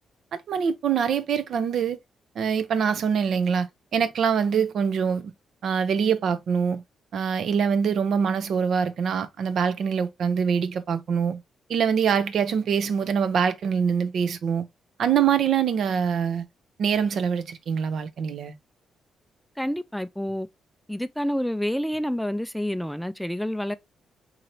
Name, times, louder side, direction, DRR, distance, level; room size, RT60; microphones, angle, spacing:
voice 1, 0.3-2.0 2.4-5.3 5.6-6.8 7.1-11.4 11.7-14.7 15.0-16.5 16.8-18.5, right 7 dB, 70° right, 0.6 m, -24 dB
voice 2, 19.6-20.5 20.9-23.8, equal, ahead, 0.3 m, -28 dB
3.8 x 2.8 x 3.1 m
cardioid pair, 95°, 0 cm